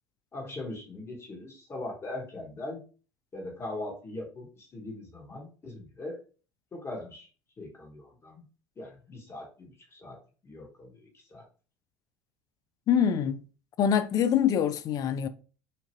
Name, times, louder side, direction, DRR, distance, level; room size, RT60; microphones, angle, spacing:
voice 1, 0.3-2.8 3.3-6.2 6.7-7.3 7.6-8.4 8.8-10.2 10.4-11.4, left 2 dB, 30° left, 1.2 m, -40 dB
voice 2, 12.9-13.4 13.8-15.3, left 8 dB, 45° left, 0.3 m, -24 dB
2.8 x 2.5 x 2.8 m
hypercardioid pair, 80°, 8 cm